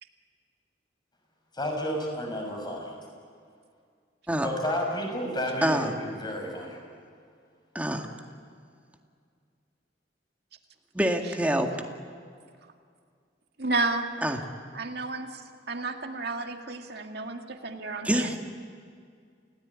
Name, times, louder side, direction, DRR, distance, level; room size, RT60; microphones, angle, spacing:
voice 1, 1.5-2.9 4.4-6.8, equal, 25° left, 1 dB, 6.4 m, -31 dB
voice 2, 5.6-5.9 7.7-8.1 10.9-11.7 14.2-14.4 18.0-18.4, right 1 dB, 10° right, 3 dB, 2.0 m, -26 dB
voice 3, 13.6-14.1 14.7-15.4 15.7-18.3, right 3 dB, 60° right, 4 dB, 2.1 m, -31 dB
29.0 x 17.5 x 9.9 m, 2.2 s
head